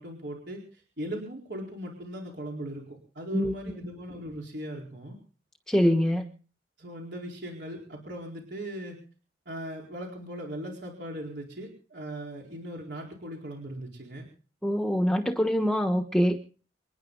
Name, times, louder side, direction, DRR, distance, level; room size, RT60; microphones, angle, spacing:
voice 1, 0.0-5.2 6.8-9.0 9.5-14.3, equal, 60° right, -1 dB, 4.3 m, -39 dB
voice 2, 5.7-6.3 14.6-16.4, equal, 5° left, 5 dB, 1.1 m, -24 dB
28.0 x 10.5 x 3.9 m, 0.41 s
head